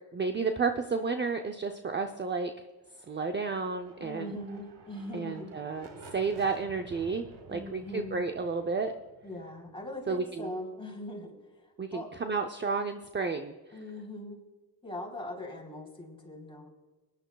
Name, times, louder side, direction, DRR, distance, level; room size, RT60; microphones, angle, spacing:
voice 1, 0.1-2.5 3.1-4.3 5.1-8.9 10.1-10.5 11.8-13.5, right 4 dB, 25° right, 6 dB, 0.6 m, -32 dB
sound 1, 2.9-10.6, right 3 dB, 85° right, 1.6 m, -53 dB
voice 2, 4.0-5.6 7.5-8.2 9.2-12.1 13.7-14.4 14.8-16.7, left 1 dB, 15° left, 0 dB, 3.5 m, -41 dB
19.5 x 10.5 x 2.3 m, 1.3 s
cardioid pair, 80°, 41 cm